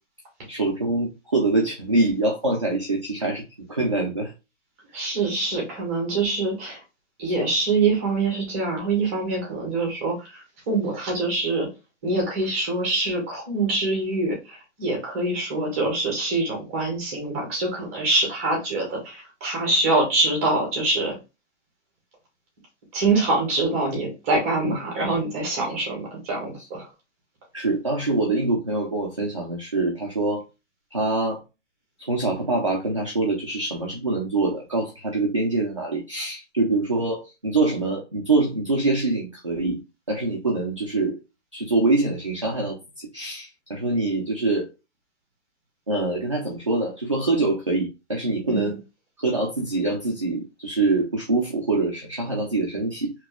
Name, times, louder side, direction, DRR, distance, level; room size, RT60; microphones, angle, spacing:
voice 1, 0.5-3.4 3.7-4.3 24.7-24.8 27.5-30.4 30.9-31.4 32.0-39.8 40.1-41.2 41.5-44.7 45.9-48.7 49.2-53.1, right 2 dB, 30° right, -1 dB, 0.4 m, -24 dB
voice 2, 4.9-6.8 7.2-11.7 12.0-21.2 22.9-26.9 48.4-48.7, right 3 dB, 10° right, 0 dB, 0.8 m, -25 dB
4.8 x 2.9 x 2.3 m, 0.27 s
hypercardioid pair, 175°, 36 cm